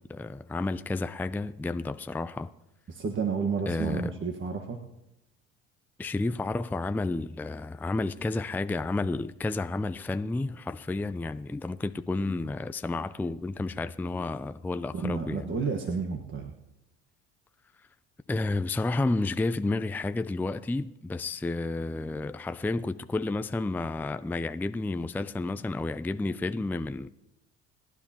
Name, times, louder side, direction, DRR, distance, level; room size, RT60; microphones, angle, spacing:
voice 1, 0.0-2.5 3.7-4.1 6.0-15.5 18.3-27.1, left 2 dB, 5° left, 0.4 m, -31 dB
voice 2, 2.9-4.8 15.0-16.5, right 5 dB, 35° right, 1.5 m, -31 dB
30.0 x 10.0 x 2.9 m
hypercardioid pair, 65°, 33 cm